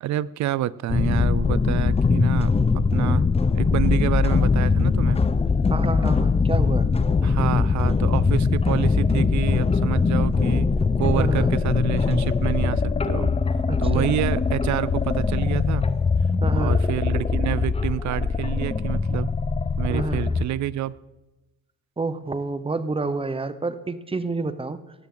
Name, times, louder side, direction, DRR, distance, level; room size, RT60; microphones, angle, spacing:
voice 1, 0.0-2.5 2.9-3.3 3.5-5.2 7.2-10.7 11.0-13.3 13.8-15.9 16.5-19.3 19.8-21.0, right 13 dB, 70° right, 21 dB, 0.5 m, -28 dB
sound 1, 0.9-20.5, left 4 dB, 20° left, 0.7 m, -21 dB
voice 2, 5.7-6.9 11.2-11.5 13.7-14.2 16.4-16.8 19.9-20.3 22.0-24.8, right 3 dB, 20° right, 13 dB, 1.0 m, -29 dB
18.0 x 13.5 x 3.9 m, 1.1 s
cardioid pair, 90°, 30 cm